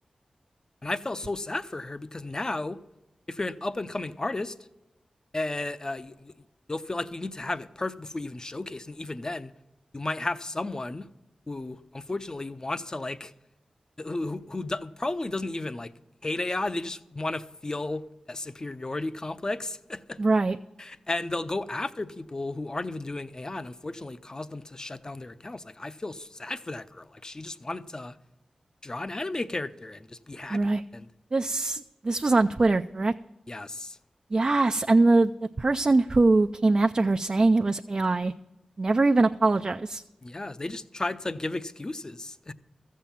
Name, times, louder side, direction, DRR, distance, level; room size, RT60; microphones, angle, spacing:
voice 1, 0.8-2.8 3.3-4.5 5.3-6.3 6.7-9.5 9.9-11.1 11.5-13.3 14.0-15.9 16.2-20.2 20.8-28.2 28.8-31.1 33.5-34.0 40.2-42.5, left 2 dB, 30° left, 0.6 m, -33 dB
voice 2, 20.2-20.6 30.5-30.8 31.3-33.1 34.3-38.3 38.8-40.0, right 3 dB, 40° right, 0.4 m, -22 dB
14.5 x 7.5 x 7.0 m
wide cardioid pair, 70°, 2 cm